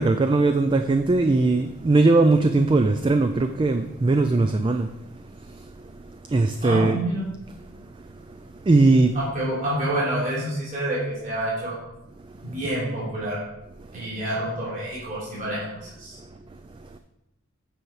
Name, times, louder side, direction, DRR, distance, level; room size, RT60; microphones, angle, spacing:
voice 1, 0.0-4.9 5.5-5.7 6.3-7.0 8.7-9.2, right 3 dB, 25° right, 0.3 m, -19 dB
voice 2, 6.6-7.3 9.1-11.8 12.4-13.4 13.9-16.2, right 1 dB, 40° right, 3.3 m, -28 dB
9.1 x 4.9 x 4.7 m
head